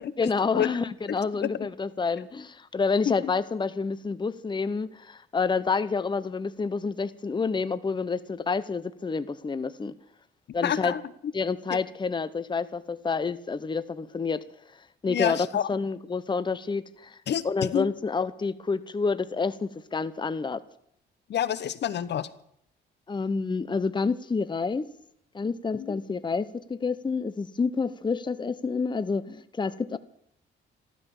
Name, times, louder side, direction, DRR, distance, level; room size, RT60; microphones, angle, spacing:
voice 1, 0.2-9.9 10.5-10.9 11.3-14.4 15.0-17.2 17.4-20.6 23.1-24.8 25.3-30.0, left 4 dB, 25° left, 14 dB, 0.9 m, -28 dB
voice 2, 1.1-1.5 3.1-3.2 10.6-11.0 11.7-11.8 15.1-15.7 17.3-17.4 17.7-17.9 21.3-22.3 25.7-26.0, left 10 dB, 60° left, 16 dB, 1.0 m, -28 dB
14.5 x 13.5 x 7.2 m, 0.72 s
cardioid pair, 90°, 20 cm